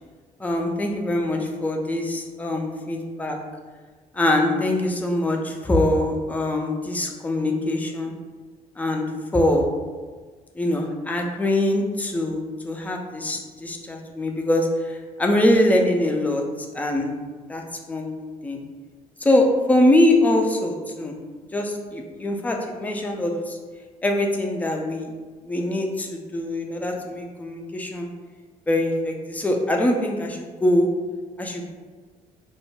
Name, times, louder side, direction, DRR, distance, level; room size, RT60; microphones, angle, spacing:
voice 1, 0.4-3.4 4.1-8.1 8.8-9.7 10.5-17.1 17.5-17.6 17.9-18.1 18.4-18.6 19.2-21.2 21.5-23.6 24.0-25.1 25.4-28.1 28.7-30.9 31.4-31.7, left 1 dB, 10° left, 2 dB, 0.4 m, -23 dB
2.3 x 2.0 x 3.1 m, 1.4 s
figure-of-eight pair, 45°, 19 cm